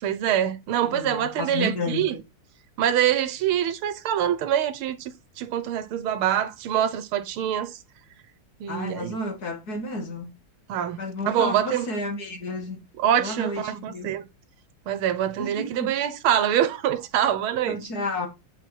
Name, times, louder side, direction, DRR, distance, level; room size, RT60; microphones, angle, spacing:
voice 1, 0.0-2.2 2.8-7.8 8.6-9.2 10.7-11.0 11.2-11.9 13.0-14.3 14.9-17.8, right 10 dB, 85° right, 1.7 m, -25 dB
voice 2, 0.8-2.2 8.7-10.3 11.0-12.8 13.2-14.1 15.4-15.9 17.7-18.3, left 2 dB, 50° left, 1.9 m, -31 dB
7.7 x 4.5 x 4.2 m
omnidirectional pair, 2.3 m